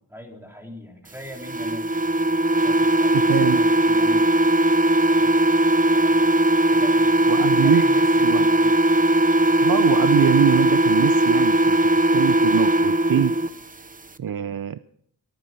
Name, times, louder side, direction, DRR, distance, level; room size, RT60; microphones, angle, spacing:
voice 1, 0.1-1.9 2.6-4.5 5.0-5.3 5.7-6.4 6.7-7.3 7.6-8.8, left 1 dB, 5° right, 1 dB, 3.2 m, -40 dB
sound 1, 1.4-13.5, right 1 dB, 20° right, 0.6 m, -19 dB
voice 2, 3.1-3.6 7.3-7.8 8.2-8.5 9.6-11.8 12.1-13.3 14.2-14.8, right 9 dB, 60° right, 13 dB, 0.6 m, -23 dB
23.0 x 8.8 x 5.5 m, 0.66 s
wide cardioid pair, 110°, 39 cm